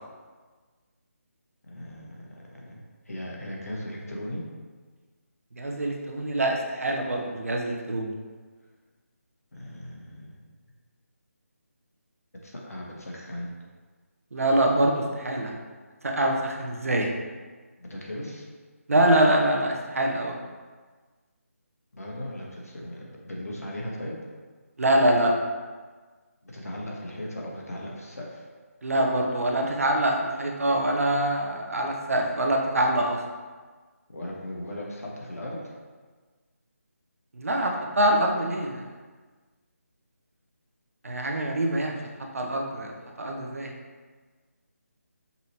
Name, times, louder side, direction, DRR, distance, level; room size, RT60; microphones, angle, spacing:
voice 1, 1.6-4.4 9.5-10.4 12.4-13.5 17.8-18.5 21.9-24.2 26.4-28.5 34.1-35.7, left 1 dB, 75° left, -2 dB, 1.1 m, -37 dB
voice 2, 5.5-8.1 14.3-15.5 16.0-17.1 18.9-20.4 24.8-25.3 28.8-33.2 37.3-38.9 41.0-42.0 42.3-42.9 43.2-43.7, right 1 dB, 65° right, 1 dB, 0.7 m, -24 dB
5.4 x 2.9 x 2.8 m, 1.4 s
figure-of-eight pair, 155°, 8 cm